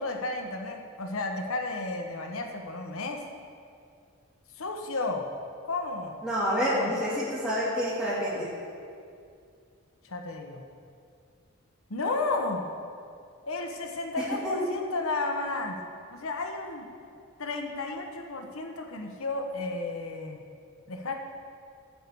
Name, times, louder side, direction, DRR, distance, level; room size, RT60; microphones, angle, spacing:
voice 1, 0.0-3.2 4.6-5.3 5.6-6.2 6.7-6.9 10.0-10.6 11.9-12.6 13.5-15.8 16.1-16.9 17.4-20.4 20.9-21.1, left 3 dB, 80° left, 3 dB, 1.1 m, -32 dB
voice 2, 6.2-8.5 14.2-14.6, equal, 5° right, -10 dB, 2.5 m, -28 dB
13.5 x 4.6 x 8.4 m, 2.3 s
head